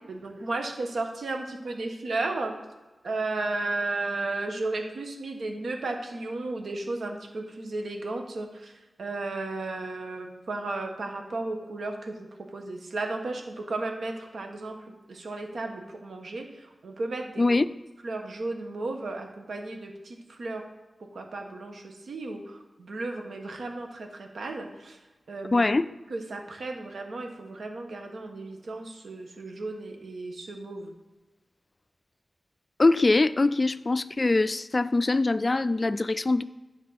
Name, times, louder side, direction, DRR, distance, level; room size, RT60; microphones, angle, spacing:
voice 1, 0.1-2.5 3.0-12.3 12.5-17.5 18.0-20.6 21.1-25.0 25.3-25.6 26.1-30.9, right 2 dB, 85° right, 3 dB, 1.3 m, -34 dB
voice 2, 25.5-25.9 32.8-36.4, left 2 dB, 35° left, 15 dB, 0.3 m, -23 dB
10.0 x 5.3 x 4.2 m, 1.1 s
wide cardioid pair, 80°, 0 cm